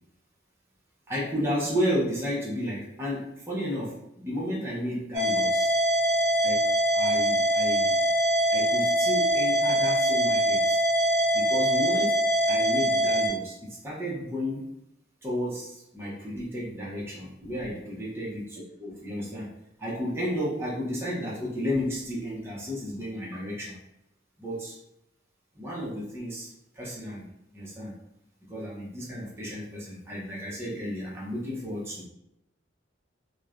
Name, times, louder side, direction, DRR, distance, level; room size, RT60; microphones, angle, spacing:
voice 1, 1.1-5.7 6.4-6.6 6.9-7.9 8.5-10.8 11.3-12.2 12.5-14.7 15.2-19.5 19.8-23.8 24.4-24.8 25.6-27.3 27.5-27.9 28.5-32.1, equal, 15° right, -6 dB, 0.5 m, -32 dB
sound 1, 5.1-13.3, right 1 dB, 35° right, 1.0 m, -23 dB
3.0 x 2.0 x 2.3 m, 0.84 s
head